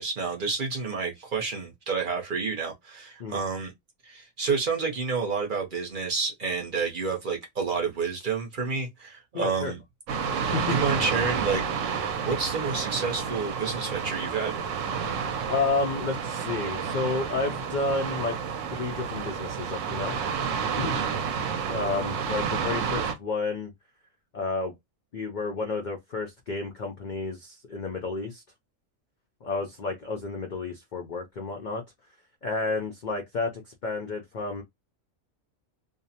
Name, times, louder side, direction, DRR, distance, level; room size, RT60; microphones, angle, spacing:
voice 1, 0.0-3.7 4.0-9.8 10.3-11.6 12.2-14.5, right 5 dB, 45° right, 0.7 m, -29 dB
voice 2, 9.3-9.7 10.4-10.8 15.5-18.3 18.7-20.2 20.8-21.0 21.7-23.7 24.3-24.7 25.1-28.4 29.4-31.8 32.4-34.6, left 3 dB, 70° left, 0.4 m, -31 dB
sound 1, 10.1-23.1, right 6 dB, 70° right, 0.9 m, -30 dB
2.5 x 2.0 x 2.7 m
omnidirectional pair, 1.4 m